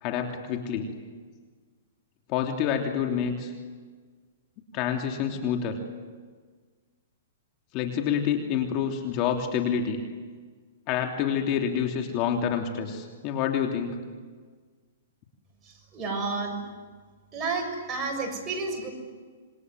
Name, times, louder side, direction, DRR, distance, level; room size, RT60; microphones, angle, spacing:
voice 1, 0.0-0.8 2.3-3.5 4.7-5.8 7.7-10.0 10.9-14.0, left 8 dB, 35° left, 3 dB, 3.1 m, -27 dB
voice 2, 15.6-16.6 17.3-18.9, right 3 dB, 20° right, 2 dB, 6.8 m, -31 dB
27.5 x 22.0 x 9.6 m, 1.5 s
hypercardioid pair, 150°, 0 cm